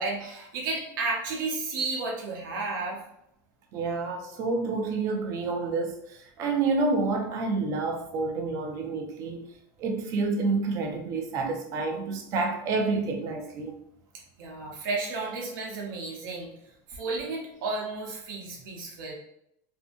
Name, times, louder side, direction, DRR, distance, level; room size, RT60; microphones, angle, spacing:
voice 1, 0.0-3.0 14.4-16.5 16.9-19.2, right 3 dB, 75° right, 0.8 m, -32 dB
voice 2, 3.7-9.5 9.8-13.8, right 3 dB, 30° right, 0.4 m, -29 dB
2.7 x 2.5 x 2.5 m
supercardioid pair, 170°, 11 cm